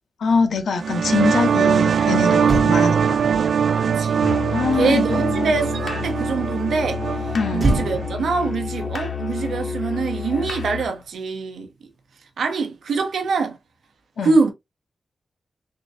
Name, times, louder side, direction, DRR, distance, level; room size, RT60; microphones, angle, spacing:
voice 1, 0.2-3.2 4.5-5.5 7.3-7.7 14.2-14.3, left 4 dB, 75° left, 0.8 m, -23 dB
sound 1, 0.8-8.1, right 7 dB, 55° right, 0.3 m, -21 dB
Motor vehicle (road), 2.0-2.1 2.4-5.9 7.6-10.2 10.4-10.7, right 1 dB, 35° right, 0.9 m, -30 dB
voice 2, 3.8-4.3 4.7-7.1 7.5-11.7 12.4-13.6 14.2-14.5, right 4 dB, 70° right, 0.9 m, -24 dB
Musical instrument, 4.2-11.0, left 5 dB, 45° left, 0.7 m, -30 dB
3.7 x 3.5 x 2.7 m
wide cardioid pair, 180°, 0 cm